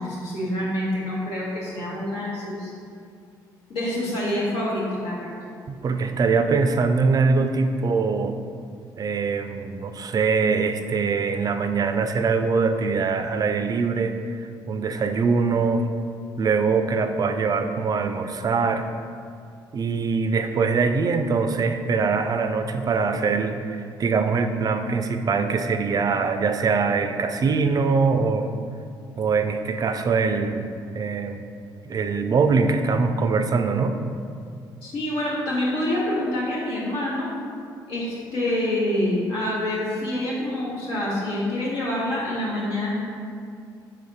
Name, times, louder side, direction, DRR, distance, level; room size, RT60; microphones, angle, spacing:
voice 1, 0.0-2.7 3.7-5.4 34.8-37.3 37.9-42.9, left 1 dB, 80° left, -6 dB, 1.3 m, -26 dB
voice 2, 5.8-8.4 9.0-14.1 14.7-15.8 16.4-18.9 19.7-28.5 29.2-31.5 31.8-34.0, right 4 dB, 40° right, 8 dB, 0.4 m, -23 dB
4.1 x 3.0 x 4.0 m, 2.3 s
supercardioid pair, 60°, 10 cm